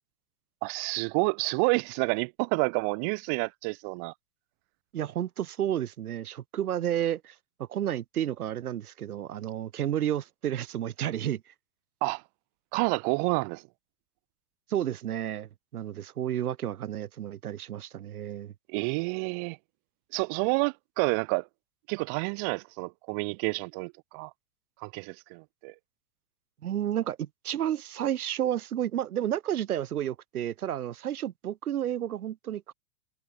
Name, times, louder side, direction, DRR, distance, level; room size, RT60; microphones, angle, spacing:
voice 1, 0.6-4.1 12.0-12.2 12.7-13.6 18.7-19.6 20.1-21.5 21.9-24.3 24.8-25.7, right 38 dB, 15° right, 0.4 m, -29 dB
voice 2, 4.9-7.3 7.6-11.4 14.7-18.5 26.6-32.7, right 11 dB, 90° right, 2.8 m, -31 dB
supercardioid pair, 165°, 43 cm